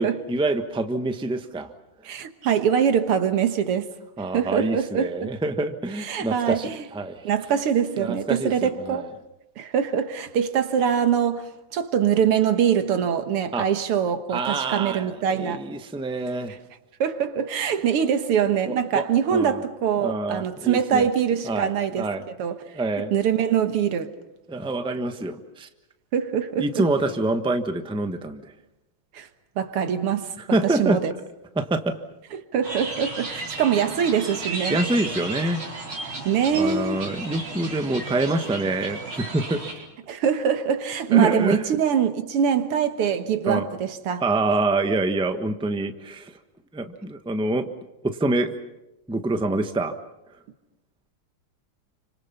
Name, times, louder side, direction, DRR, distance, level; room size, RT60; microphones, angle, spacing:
voice 1, 0.0-1.7 4.2-7.3 8.0-9.0 13.5-13.7 14.3-16.5 18.7-19.1 19.3-19.6 20.0-21.1 21.5-21.7 22.0-22.2 22.7-23.1 24.5-25.7 26.6-28.5 30.5-31.0 31.6-32.0 34.7-35.6 36.5-39.6 41.1-41.6 43.5-43.7 44.2-46.3 46.7-47.7 48.0-48.5 49.1-49.9, right 2 dB, 5° right, 0.9 m, -26 dB
voice 2, 2.0-3.9 4.3-5.1 6.0-6.8 7.2-9.1 9.6-15.7 16.5-16.6 17.0-22.1 22.4-22.6 23.0-24.1 26.1-26.9 29.1-29.3 29.6-31.1 32.3-34.8 36.3-37.0 40.1-44.2, right 8 dB, 85° right, 2.3 m, -23 dB
sound 1, 32.6-39.7, right 2 dB, 65° right, 5.0 m, -34 dB
30.0 x 26.0 x 5.7 m
omnidirectional pair, 2.4 m